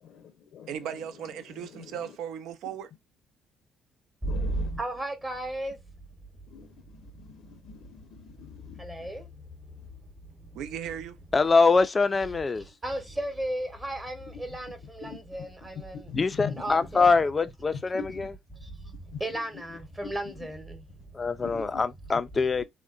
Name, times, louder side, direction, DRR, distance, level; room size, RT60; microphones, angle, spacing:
voice 1, 0.0-0.8 1.5-2.1 4.2-4.7 6.5-8.8 15.0-15.2 16.1-17.0 17.9-18.2 19.1-19.2 20.0-20.1 21.4-21.8 22.6-22.7, left 7 dB, 70° left, 0.6 m, -42 dB
voice 2, 0.7-2.9 10.6-11.2, right 9 dB, 80° right, 0.5 m, -37 dB
voice 3, 4.2-5.8 7.4-7.9 8.4-10.0 12.6-16.1 16.5-17.1 18.5-21.3, right 1 dB, 15° right, 0.8 m, -35 dB
voice 4, 11.3-12.6 16.1-18.3 21.1-22.6, left 4 dB, 25° left, 0.3 m, -24 dB
3.7 x 2.1 x 2.4 m
cardioid pair, 125°, 0 cm